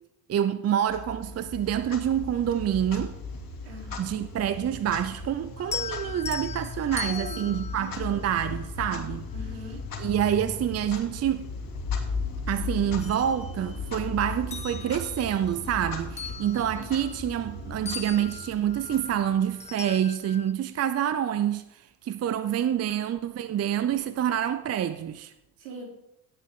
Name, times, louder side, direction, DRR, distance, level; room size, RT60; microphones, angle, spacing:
voice 1, 0.3-3.2 4.0-9.3 10.0-11.5 12.5-25.3, right 10 dB, 30° right, 0.7 m, -27 dB
Clock, 0.9-19.6, left 3 dB, 40° left, 2.7 m, -37 dB
voice 2, 3.6-4.3 7.1-8.2 9.3-9.8 25.6-25.8, right 2 dB, 70° right, 3.7 m, -42 dB
sound 1, 5.6-8.9 10.6-10.7 11.2-12.4 12.7-14.0 14.4-17.6 17.8-20.5, left 6 dB, 15° left, 0.5 m, -40 dB
17.5 x 7.7 x 3.8 m
hypercardioid pair, 55°, 49 cm